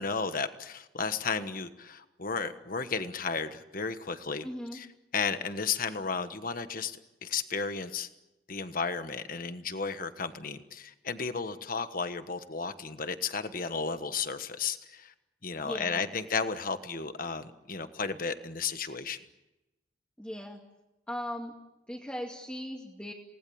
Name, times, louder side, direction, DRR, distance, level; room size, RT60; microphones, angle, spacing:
voice 1, 0.0-4.9 5.1-8.1 8.5-15.1 15.4-19.2, left 5 dB, 50° left, 10 dB, 1.3 m, -33 dB
voice 2, 4.4-4.8 15.6-16.1 20.2-20.6 21.1-21.5 21.9-23.1, equal, 5° left, -2 dB, 2.4 m, -38 dB
28.5 x 19.0 x 8.7 m, 1.0 s
head